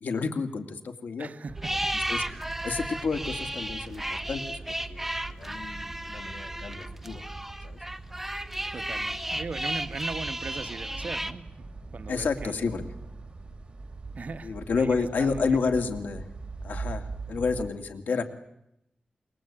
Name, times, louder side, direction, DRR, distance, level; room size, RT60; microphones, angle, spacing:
voice 1, 0.0-1.3 2.1-2.2 2.6-4.5 4.9-7.2 7.6-7.8 12.1-12.9 14.4-16.2 16.6-18.2, left 4 dB, 85° left, 7 dB, 2.4 m, -30 dB
voice 2, 1.2-1.9 8.7-12.8 14.1-15.6, right 4 dB, 55° right, 11 dB, 1.1 m, -39 dB
sound 1, 1.5-17.7, right 3 dB, 35° right, 3.2 m, -42 dB
sound 2, 1.6-11.3, right 1 dB, 10° right, 1.3 m, -34 dB
27.0 x 23.0 x 8.8 m, 0.80 s
wide cardioid pair, 90°, 3 cm